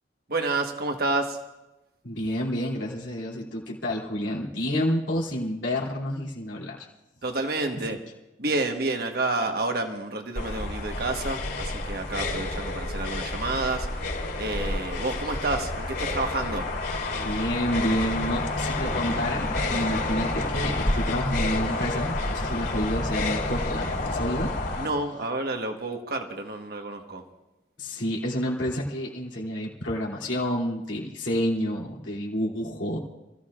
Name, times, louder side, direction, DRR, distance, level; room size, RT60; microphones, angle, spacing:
voice 1, 0.3-1.4 7.2-8.0 8.4-14.0 14.4-16.7 24.8-27.2, right 2 dB, 55° right, 4 dB, 1.3 m, -29 dB
voice 2, 2.0-6.9 17.1-24.5 27.8-33.0, equal, 85° left, -3 dB, 3.0 m, -29 dB
sound 1, 10.3-24.9, left 2 dB, 65° left, 3.9 m, -29 dB
27.5 x 15.0 x 2.5 m, 1.0 s
head